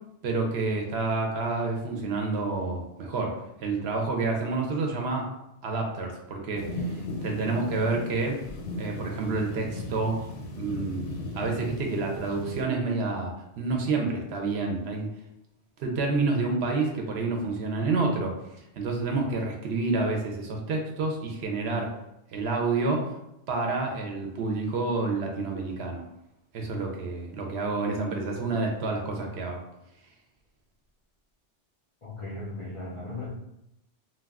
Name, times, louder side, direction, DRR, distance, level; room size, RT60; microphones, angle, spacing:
voice 1, 0.2-5.3 5.6-8.4 8.8-10.2 10.5-11.1 11.3-15.1 15.8-18.3 18.8-21.9 22.3-23.1 23.5-26.0 26.5-29.6, right 3 dB, 65° right, 1 dB, 0.8 m, -29 dB
sound 1, 6.5-12.6, left 2 dB, 80° left, 0.9 m, -37 dB
voice 2, 32.0-33.3, left 2 dB, 45° left, -7 dB, 0.4 m, -37 dB
2.3 x 2.2 x 3.4 m, 0.84 s
omnidirectional pair, 1.2 m